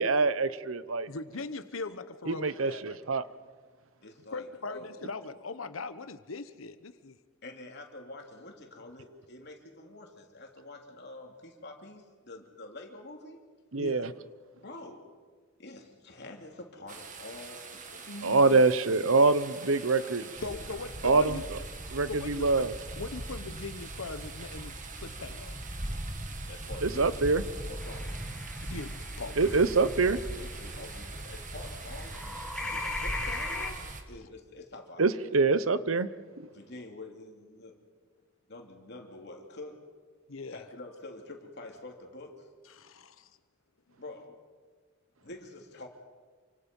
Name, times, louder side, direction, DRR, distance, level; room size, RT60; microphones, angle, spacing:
voice 1, 0.0-1.1 2.3-3.2 13.7-14.1 18.2-20.3 21.0-21.4 21.9-22.7 26.8-27.4 29.4-30.2 35.0-36.1, right 3 dB, 85° right, 14 dB, 0.9 m, -25 dB
voice 2, 1.1-3.0 4.3-7.2 13.8-14.1 18.1-18.6 20.4-21.4 22.1-22.7 23.0-25.6 28.6-29.4 40.3-40.6 42.7-43.3, left 3 dB, 90° left, 11 dB, 1.1 m, -40 dB
voice 3, 4.0-5.0 7.4-13.4 14.5-15.1 15.6-18.1 20.0-20.8 26.5-27.1 27.6-28.2 30.4-35.1 36.5-37.8 38.5-39.8 40.5-42.5 44.0-44.4 45.2-45.9, left 2 dB, 55° left, 2 dB, 3.3 m, -47 dB
sound 1, 16.9-34.0, right 5 dB, 40° right, 2.0 m, -46 dB
sound 2, 20.4-34.0, equal, 20° right, 1.5 m, -41 dB
sound 3, 27.8-31.6 31.8-33.7, left 2 dB, 5° left, 2.4 m, -39 dB
28.5 x 25.0 x 5.5 m, 1.5 s
head